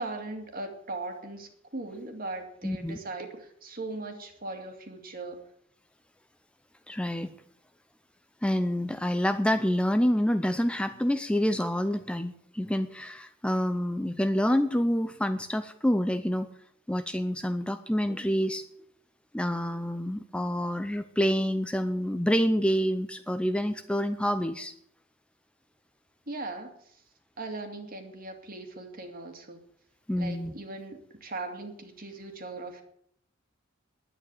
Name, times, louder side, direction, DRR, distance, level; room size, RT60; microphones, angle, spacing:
voice 1, 0.0-5.4 26.3-27.0 27.4-29.6 30.2-32.8, right 2 dB, 45° right, 5 dB, 2.3 m, -39 dB
voice 2, 2.6-3.0 6.9-7.3 8.4-16.5 16.9-18.6 19.3-24.7 30.1-30.5, equal, 5° left, 9 dB, 0.5 m, -27 dB
11.0 x 9.3 x 8.8 m, 0.71 s
head